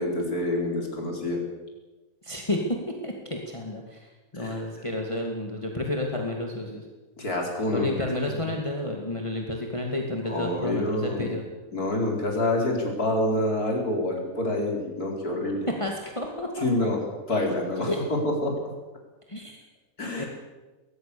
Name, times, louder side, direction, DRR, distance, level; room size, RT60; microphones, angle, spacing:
voice 1, 0.0-1.4 4.3-4.6 7.2-7.9 10.3-11.3 11.7-15.7 16.6-17.0 17.3-18.5 20.0-20.3, left 1 dB, 75° left, 0 dB, 5.1 m, -27 dB
voice 2, 2.2-6.9 7.7-11.4 15.7-16.7 17.9-18.0 19.3-19.6 20.2-20.3, left 1 dB, 20° left, 1 dB, 2.4 m, -31 dB
21.5 x 20.5 x 7.0 m, 1.2 s
omnidirectional pair, 1.6 m